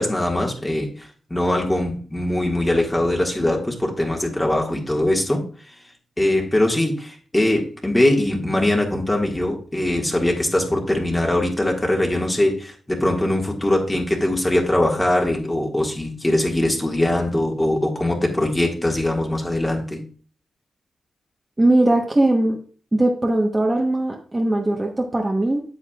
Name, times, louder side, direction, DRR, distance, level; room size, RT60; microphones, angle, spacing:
voice 1, 0.0-5.4 6.2-20.0, left 1 dB, 15° left, 0 dB, 1.8 m, -21 dB
voice 2, 21.6-22.6 22.9-25.6, right 1 dB, 20° right, 0 dB, 1.2 m, -19 dB
8.3 x 8.2 x 2.4 m, 0.40 s
cardioid pair, 75°, 0 cm